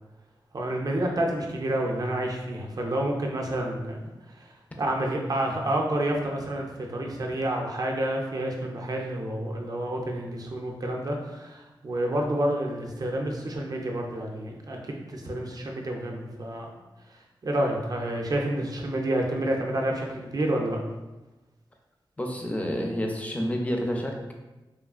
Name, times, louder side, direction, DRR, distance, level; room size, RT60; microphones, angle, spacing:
voice 1, 0.5-4.5 4.8-16.7 17.4-20.8, right 1 dB, 50° right, 1 dB, 0.4 m, -29 dB
voice 2, 22.2-24.3, equal, 15° left, 2 dB, 0.4 m, -29 dB
3.1 x 2.4 x 2.4 m, 1.1 s
wide cardioid pair, 85°, 8 cm